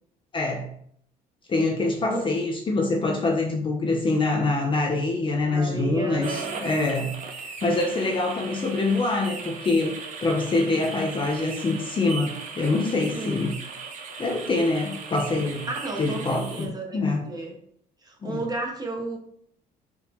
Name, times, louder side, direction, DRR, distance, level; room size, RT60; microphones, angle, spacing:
voice 1, 0.3-0.7 1.5-13.5 14.2-15.7 16.0-17.3 18.2-18.4, left 2 dB, 30° left, 2 dB, 0.6 m, -25 dB
voice 2, 5.5-6.6 13.1-13.5 15.7-17.5 18.0-19.2, right 2 dB, 25° right, 1 dB, 1.0 m, -33 dB
sound 1, 6.2-16.7, right 5 dB, 45° right, 0.8 m, -38 dB
4.6 x 2.7 x 3.5 m, 0.66 s
cardioid pair, 110°, 17 cm